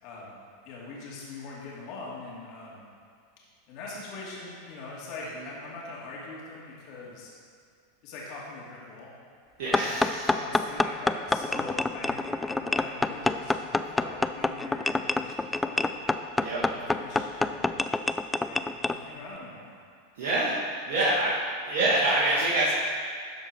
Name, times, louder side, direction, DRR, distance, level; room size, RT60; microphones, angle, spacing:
voice 1, 0.0-2.8 3.7-7.3 8.0-9.1 9.6-10.0 10.3-16.0 16.5-17.7 18.4-19.8 20.9-21.0, left 3 dB, 55° left, -5 dB, 2.4 m, -42 dB
voice 2, 9.6-10.3 16.4-16.6 20.2-20.5 20.9-21.3 21.7-22.7, right 1 dB, 65° right, -7 dB, 1.7 m, -25 dB
sound 1, 9.7-19.0, left 2 dB, 10° left, 0.3 m, -27 dB
12.5 x 4.5 x 4.8 m, 2.1 s
hypercardioid pair, 100°, 0 cm